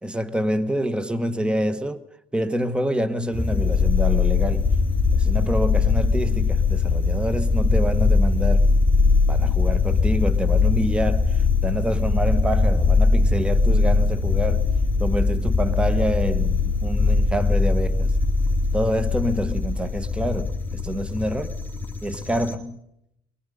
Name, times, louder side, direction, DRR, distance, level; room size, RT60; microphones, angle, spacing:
voice 1, 0.0-2.0 2.3-4.7 5.1-8.7 9.3-14.6 15.0-18.1 18.7-21.5 22.0-22.8, right 1 dB, 5° right, 1.2 m, -27 dB
sound 1, 3.3-22.5, left 4 dB, 10° left, 2.9 m, -21 dB
23.5 x 23.0 x 5.4 m
cardioid pair, 110°, 17 cm